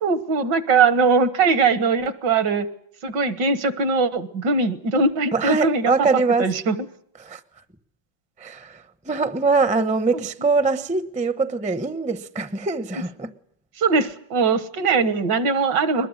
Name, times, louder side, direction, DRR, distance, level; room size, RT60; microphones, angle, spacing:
voice 1, 0.0-2.7 3.0-6.8 13.8-16.1, right 4 dB, 70° right, 2.0 m, -21 dB
voice 2, 5.3-6.5 7.2-7.4 8.4-13.3, right 4 dB, 5° right, 0.6 m, -23 dB
23.0 x 20.5 x 9.8 m
omnidirectional pair, 2.0 m